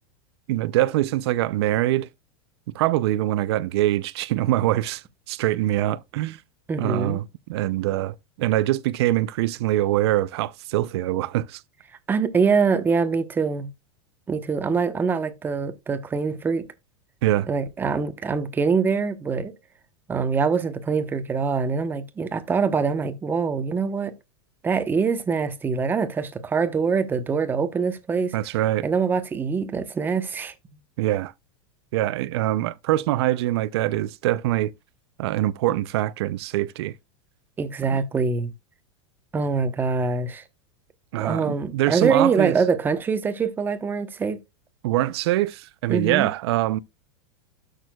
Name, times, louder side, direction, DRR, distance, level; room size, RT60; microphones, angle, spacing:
voice 1, 0.5-2.1 2.7-6.4 6.8-11.6 17.2-17.5 28.3-28.9 31.0-31.3 31.9-34.7 35.2-36.9 41.1-42.6 44.8-46.8, right 15 dB, 65° right, 0.5 m, -24 dB
voice 2, 6.7-7.2 12.1-13.7 14.3-16.7 17.5-19.5 20.1-24.1 24.6-28.3 28.8-30.5 37.6-38.5 39.3-40.4 41.2-44.4 45.9-46.3, right 5 dB, 15° right, 0.9 m, -24 dB
12.5 x 6.5 x 2.2 m
supercardioid pair, 150°, 14 cm